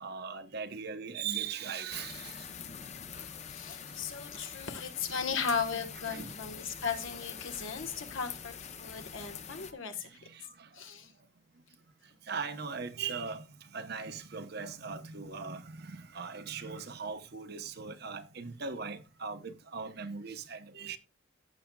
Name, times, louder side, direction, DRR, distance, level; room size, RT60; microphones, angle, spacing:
voice 1, 0.0-2.3 6.1-6.3 12.3-13.4 13.7-21.0, right 5 dB, 50° right, 0.9 m, -39 dB
sound 1, 1.9-9.7, left 7 dB, 35° left, 0.7 m, -45 dB
voice 2, 3.1-10.1 10.7-11.1, left 5 dB, 80° left, 1.3 m, -37 dB
14.5 x 7.6 x 2.3 m
head